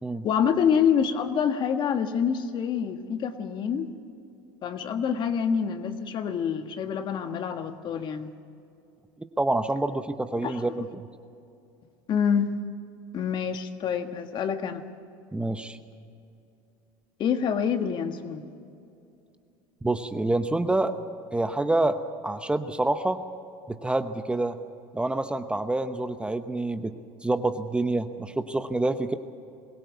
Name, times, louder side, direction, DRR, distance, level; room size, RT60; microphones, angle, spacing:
voice 1, 0.2-3.9 4.6-8.3 10.4-10.6 12.1-12.5 13.1-14.8 17.2-18.4, left 7 dB, 45° left, 7 dB, 1.6 m, -26 dB
voice 2, 9.4-10.9 15.3-15.8 19.8-20.9 21.3-22.0 22.2-23.2 23.7-24.6 24.9-26.9 27.2-29.1, right 2 dB, 10° right, 9 dB, 0.9 m, -27 dB
22.5 x 16.0 x 8.3 m, 2.6 s
supercardioid pair, 95°, 11 cm